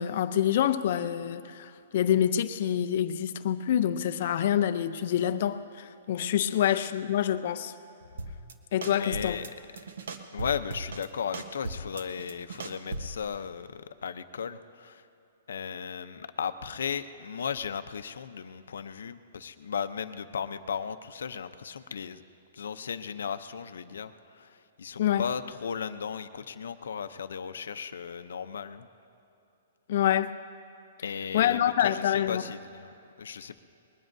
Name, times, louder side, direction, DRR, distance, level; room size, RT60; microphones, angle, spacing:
voice 1, 0.0-7.7 8.7-9.4 25.0-25.2 29.9-30.3 31.3-32.4, left 10 dB, 40° left, 10 dB, 0.5 m, -26 dB
voice 2, 6.5-6.9 8.9-9.5 10.3-15.1 15.5-22.2 22.5-28.9 31.0-33.6, left 7 dB, 80° left, 11 dB, 0.6 m, -36 dB
sound 1, 8.2-8.5 8.8-9.5 9.8-11.1 11.3-13.2, right 3 dB, 65° right, 1.0 m, -37 dB
21.0 x 20.0 x 2.7 m, 2.8 s
hypercardioid pair, 180°, 0 cm